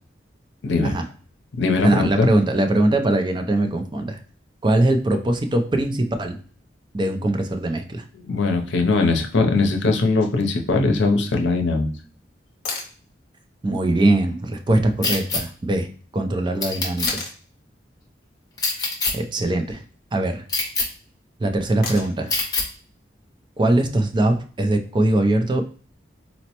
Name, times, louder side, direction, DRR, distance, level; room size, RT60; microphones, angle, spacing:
voice 1, 0.6-1.0 1.6-2.3 8.2-11.9, left 3 dB, 80° left, 3 dB, 0.6 m, -20 dB
voice 2, 1.8-4.2 4.6-6.4 6.9-8.0 13.6-17.2 19.1-19.8 20.1-20.4 21.4-22.4 23.6-25.6, right 1 dB, 25° right, 6 dB, 0.4 m, -21 dB
sound 1, 12.6-12.9 15.2-15.3 17.1-17.4 19.4-19.8 21.8-22.3 24.4-24.5, left 3 dB, 50° left, 0.9 m, -32 dB
sound 2, 15.0-15.4 16.6-17.1 18.6-19.1 20.5-20.9 22.3-22.7, left 3 dB, 20° left, 0.8 m, -23 dB
4.1 x 2.1 x 2.9 m, 0.40 s
head